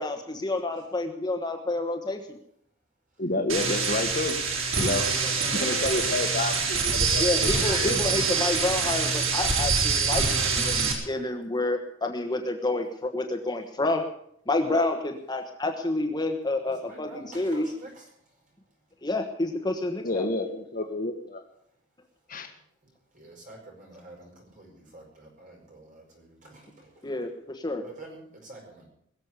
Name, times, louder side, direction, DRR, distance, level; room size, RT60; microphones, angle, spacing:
voice 1, 0.0-2.4 7.2-14.0 14.5-17.7 19.0-20.3 27.0-27.8, left 2 dB, 20° left, 4 dB, 1.3 m, -29 dB
voice 2, 3.2-4.4 4.7-5.0 5.5-8.0 20.0-21.4 22.3-22.5, left 2 dB, 45° left, 5 dB, 1.6 m, -29 dB
sound 1, 3.5-10.9, right 5 dB, 85° right, 4.0 m, -25 dB
voice 3, 5.2-6.3 6.7-6.8 16.6-18.1 23.1-27.1 27.8-28.8, right 2 dB, 40° right, 0 dB, 6.7 m, -47 dB
21.5 x 7.5 x 8.3 m, 0.69 s
head